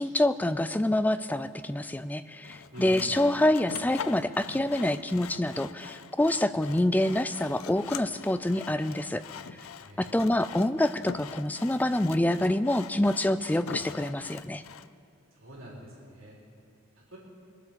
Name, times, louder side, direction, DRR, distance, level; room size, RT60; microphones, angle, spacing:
voice 1, 0.0-9.2 10.0-14.6, left 1 dB, 5° left, 12 dB, 0.3 m, -26 dB
Sawing, 2.4-14.9, left 7 dB, 70° left, 0.5 m, -43 dB
voice 2, 2.7-3.2 9.8-10.2 15.4-16.4 17.1-17.2, equal, 65° right, -4 dB, 3.7 m, -45 dB
22.0 x 8.2 x 6.9 m, 2.5 s
head